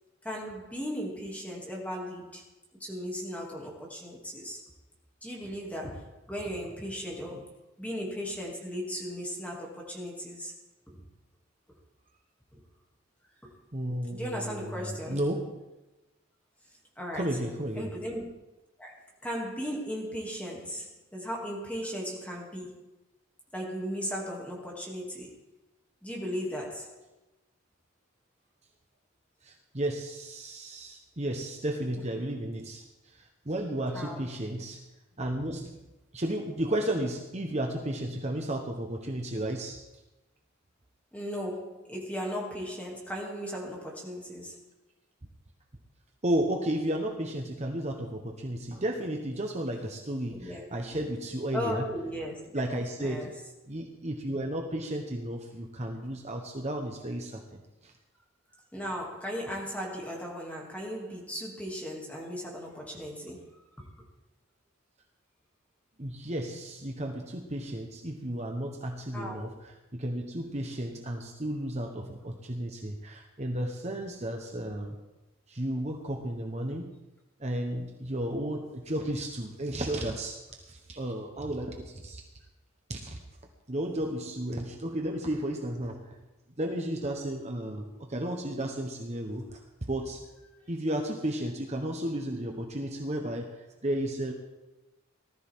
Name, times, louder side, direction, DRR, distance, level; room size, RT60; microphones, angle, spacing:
voice 1, 0.2-2.5 2.8-4.6 5.2-10.5 14.1-15.2 17.0-17.4 17.7-18.3 18.8-22.9 23.5-25.4 26.0-27.0 33.9-34.2 41.1-44.6 50.3-50.7 50.9-51.0 51.5-52.7 53.0-53.3 58.7-63.5 69.1-69.4 90.5-90.6, equal, 5° left, -2 dB, 2.7 m, -37 dB
voice 2, 13.7-15.6 17.1-17.9 29.4-34.8 35.2-39.8 46.2-51.8 52.5-53.3 53.7-57.9 66.0-75.0 75.5-77.0 77.4-82.2 82.9-83.2 83.7-86.2 86.6-89.6 89.9-90.2 90.7-94.3, right 1 dB, 35° right, 2 dB, 1.2 m, -33 dB
19.0 x 13.5 x 3.7 m, 1.0 s
head